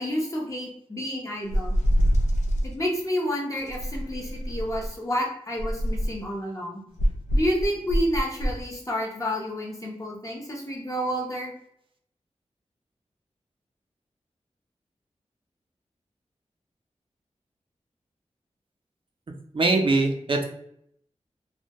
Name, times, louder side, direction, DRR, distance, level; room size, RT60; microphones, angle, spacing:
voice 1, 0.0-1.8 2.6-6.8 7.3-11.5, equal, 30° left, -2 dB, 0.6 m, -29 dB
sound 1, 1.5-2.7 3.7-4.9 5.6-6.3 7.0-8.6, equal, 90° left, 0.4 m, -25 dB
voice 2, 19.5-20.4, right 3 dB, 45° right, 3 dB, 0.4 m, -22 dB
2.2 x 2.0 x 2.7 m, 0.69 s
wide cardioid pair, 85°, 12 cm